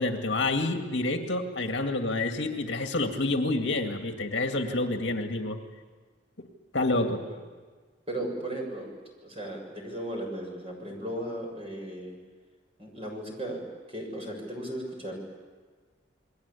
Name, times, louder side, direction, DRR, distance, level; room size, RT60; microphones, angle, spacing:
voice 1, 0.0-5.6 6.7-7.2, left 2 dB, 65° left, 4 dB, 2.2 m, -28 dB
voice 2, 6.9-7.4 8.1-8.9 9.2-12.1 12.8-13.6 13.9-15.1, right 1 dB, 30° right, 0 dB, 7.1 m, -36 dB
29.0 x 21.0 x 8.5 m, 1.5 s
head